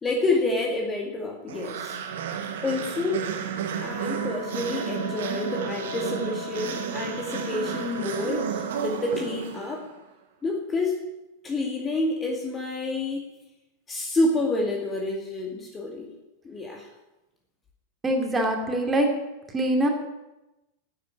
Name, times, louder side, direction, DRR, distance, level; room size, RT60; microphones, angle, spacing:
voice 1, 0.0-2.0 2.6-3.2 3.8-9.8 10.4-11.0 11.4-13.3 13.9-16.1 16.4-16.9, left 2 dB, 20° left, 1 dB, 2.2 m, -28 dB
sound 1, 1.5-9.9, right 8 dB, 55° right, 1.4 m, -32 dB
Wind instrument woodwind instrument, 3.7-8.9, left 4 dB, 50° left, 5.4 m, -40 dB
voice 2, 18.0-19.1 19.5-19.9, right 1 dB, 15° right, 3 dB, 2.7 m, -23 dB
11.0 x 8.3 x 9.6 m, 0.99 s
figure-of-eight pair, 90°, 0 cm